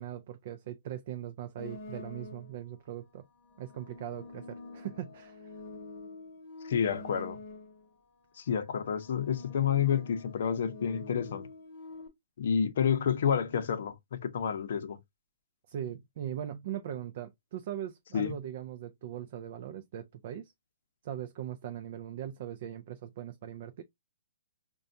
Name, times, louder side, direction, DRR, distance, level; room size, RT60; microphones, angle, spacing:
voice 1, 0.0-3.2 3.6-5.5 15.7-20.5 21.0-23.8, right 10 dB, 40° right, 0.3 m, -40 dB
sound 1, 1.6-2.7 3.4-7.9 8.7-12.1, left 3 dB, 25° left, 0.9 m, -46 dB
voice 2, 6.6-7.4 8.4-11.5 12.4-15.0 18.1-18.3, left 7 dB, 50° left, 0.6 m, -29 dB
5.4 x 2.2 x 2.6 m
hypercardioid pair, 170°, 0 cm